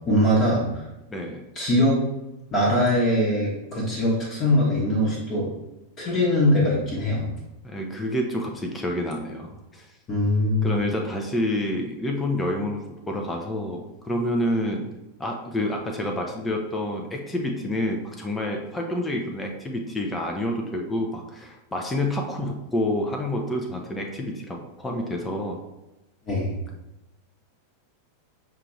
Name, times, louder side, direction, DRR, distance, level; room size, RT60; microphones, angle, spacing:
voice 1, 0.1-0.7 1.5-2.0 2.5-5.5 6.0-7.3 10.1-10.8 26.3-26.5, left 1 dB, 30° left, -5 dB, 1.0 m, -22 dB
voice 2, 1.1-1.4 7.6-9.9 10.6-14.9 15.2-25.6, left 1 dB, 10° left, 1 dB, 0.5 m, -28 dB
5.5 x 2.5 x 3.1 m, 0.96 s
figure-of-eight pair, 90°, 0 cm